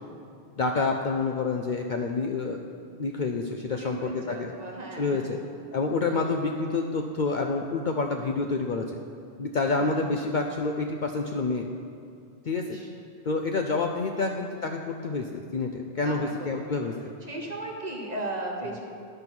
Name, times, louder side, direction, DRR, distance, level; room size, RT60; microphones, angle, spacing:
voice 1, 0.6-2.6 3.0-4.5 5.0-5.4 5.7-9.0 9.4-11.7 12.4-12.7 13.2-17.0, left 3 dB, 55° left, 3 dB, 0.6 m, -28 dB
voice 2, 3.7-5.3 6.0-6.4 9.7-10.1 12.6-12.9 16.0-16.9 17.2-18.9, right 2 dB, 35° right, -1 dB, 1.4 m, -37 dB
11.5 x 5.5 x 6.0 m, 2.4 s
omnidirectional pair, 1.1 m